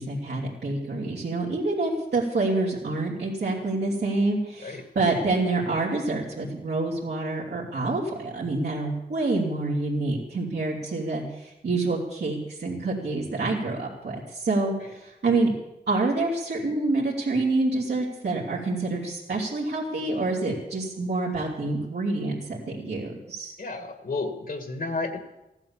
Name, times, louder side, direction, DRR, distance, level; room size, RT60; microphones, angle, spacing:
voice 1, 0.0-15.5 15.9-23.5, right 2 dB, 90° right, -6 dB, 3.1 m, -27 dB
voice 2, 23.6-25.2, left 3 dB, 60° left, 8 dB, 2.0 m, -32 dB
15.0 x 11.5 x 7.4 m, 0.93 s
wide cardioid pair, 75°, 17 cm